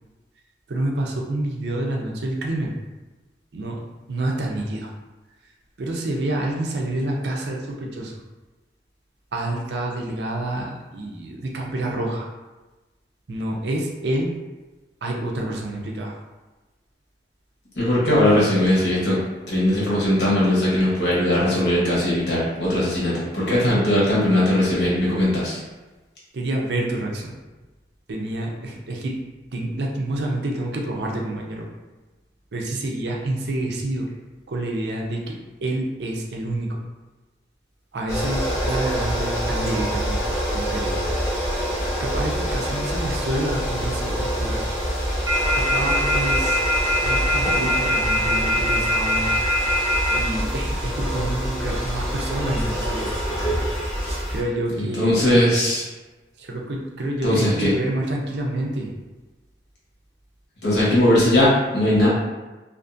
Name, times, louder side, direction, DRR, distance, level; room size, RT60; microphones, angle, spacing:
voice 1, 0.7-2.7 3.5-3.8 4.1-4.9 5.8-8.1 9.3-12.3 13.3-14.4 15.0-16.2 26.3-27.4 28.1-29.2 29.5-31.7 32.5-34.1 34.5-36.8 37.9-40.2 40.5-41.1 42.0-44.6 45.5-46.6 47.0-53.1 54.3-55.3 56.4-58.9, right 1 dB, 80° right, 0 dB, 0.5 m, -28 dB
voice 2, 17.7-19.2 19.5-25.6 54.7-55.8 57.2-57.7 60.6-62.1, left 1 dB, 85° left, -7 dB, 1.1 m, -19 dB
sound 1, 38.1-54.4, equal, 15° left, 0.7 m, -26 dB
sound 2, 45.3-50.2, left 1 dB, 20° right, 0.3 m, -21 dB
2.5 x 2.4 x 2.5 m, 1.2 s
head